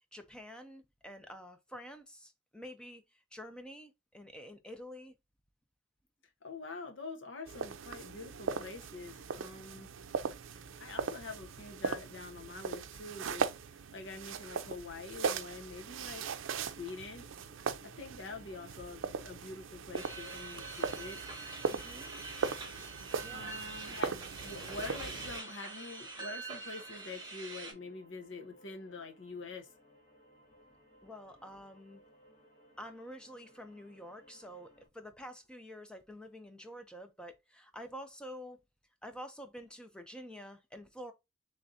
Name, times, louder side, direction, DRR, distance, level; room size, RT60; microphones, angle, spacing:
voice 1, 0.1-3.0 3.3-5.1 21.7-22.1 23.2-23.6 31.0-32.0 32.8-38.6 39.0-41.1, equal, 5° left, 0.6 m, -48 dB
voice 2, 6.4-9.9 10.6-13.5 13.9-16.2 16.6-17.2 17.8-21.2 23.3-29.7, left 3 dB, 75° left, 0.9 m, -45 dB
sound 1, 7.5-25.4, right 5 dB, 80° right, 0.5 m, -39 dB
sound 2, 15.6-34.9, equal, 40° left, 2.8 m, -63 dB
sound 3, 19.9-27.7, right 3 dB, 20° right, 1.3 m, -45 dB
3.8 x 3.4 x 2.7 m
head